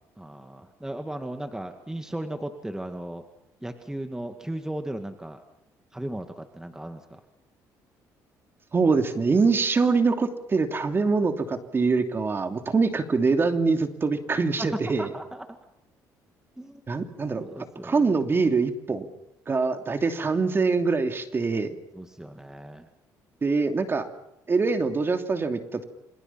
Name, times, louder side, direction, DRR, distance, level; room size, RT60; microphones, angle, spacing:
voice 1, 0.2-3.2 3.6-5.4 5.9-7.2 14.6-14.7 15.0-15.6 16.6-16.8 17.4-18.1 21.9-22.9, right 1 dB, 5° right, 6 dB, 2.1 m, -36 dB
voice 2, 8.7-15.1 16.9-17.4 17.8-19.1 19.5-21.8 23.4-24.1 24.5-25.8, right 4 dB, 30° right, 6 dB, 3.0 m, -24 dB
28.0 x 27.0 x 5.9 m, 0.85 s
cardioid pair, 95°, 7 cm